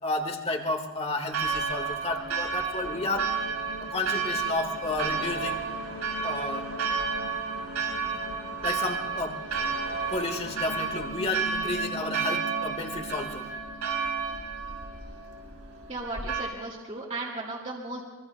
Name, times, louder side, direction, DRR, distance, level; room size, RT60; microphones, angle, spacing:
voice 1, 0.0-3.3 3.8-5.6 6.2-6.7 8.6-9.4 10.1-13.5, left 2 dB, 30° left, 4 dB, 1.6 m, -31 dB
Church bell, 1.3-16.4, right 5 dB, 75° right, 5.7 m, -32 dB
sound 1, 2.8-17.0, equal, 75° left, 1.2 m, -44 dB
voice 2, 15.9-18.0, right 2 dB, 30° right, -3 dB, 2.3 m, -35 dB
25.5 x 23.0 x 2.3 m, 1.3 s
head